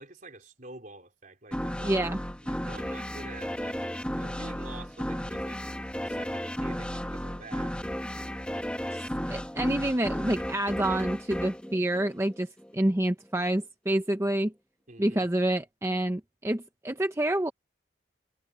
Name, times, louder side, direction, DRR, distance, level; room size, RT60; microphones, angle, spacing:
voice 1, 0.0-2.1 2.4-3.8 4.1-5.6 6.0-7.7 14.9-15.3, right 2 dB, 45° right, 4.3 m, -47 dB
sound 1, 1.5-12.7, equal, 5° left, 1.6 m, -34 dB
voice 2, 1.8-2.2 8.9-9.0 9.3-14.5 15.0-17.5, right 1 dB, 15° right, 0.7 m, -28 dB
head